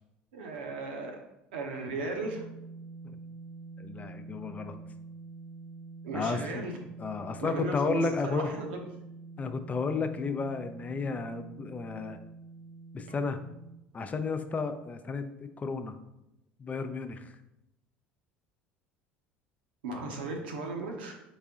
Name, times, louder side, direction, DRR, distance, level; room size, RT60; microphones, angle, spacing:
voice 1, 0.3-1.2 1.5-2.4 6.0-6.8 7.4-8.9 19.8-21.1, right 3 dB, 85° right, 2 dB, 0.9 m, -36 dB
sound 1, 2.2-13.8, right 3 dB, 45° left, 0.8 m, -47 dB
voice 2, 3.8-4.7 6.1-6.7 7.0-8.5 9.4-12.2 12.9-13.4 13.9-16.0 16.6-17.3, left 4 dB, 30° left, 9 dB, 0.5 m, -32 dB
4.0 x 3.6 x 3.6 m, 0.87 s
hypercardioid pair, 70°, 5 cm